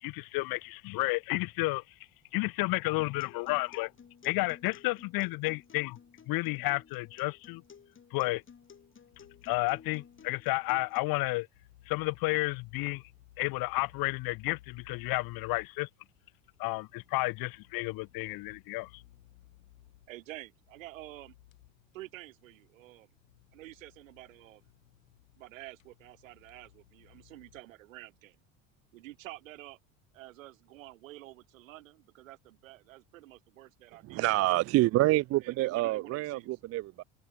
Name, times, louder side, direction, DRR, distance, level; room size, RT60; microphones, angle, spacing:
voice 1, 0.0-1.8 2.3-3.9 4.2-6.0 6.3-7.6 8.1-8.4 9.4-11.5 11.9-13.0 13.4-15.9 16.6-19.0, left 23 dB, 65° left, 1.5 m, -31 dB
Acoustic guitar, 3.0-11.0, left 7 dB, 30° left, 4.1 m, -55 dB
sound 1, 9.1-27.6, left 15 dB, 85° left, 6.6 m, -60 dB
voice 2, 20.1-21.3 21.9-23.1 23.5-24.6 25.4-28.4 28.9-29.8 30.1-34.6 35.4-36.5, right 17 dB, 85° right, 2.2 m, -49 dB
voice 3, 34.1-37.0, right 17 dB, 40° right, 0.4 m, -27 dB
hypercardioid pair, 80°, 39 cm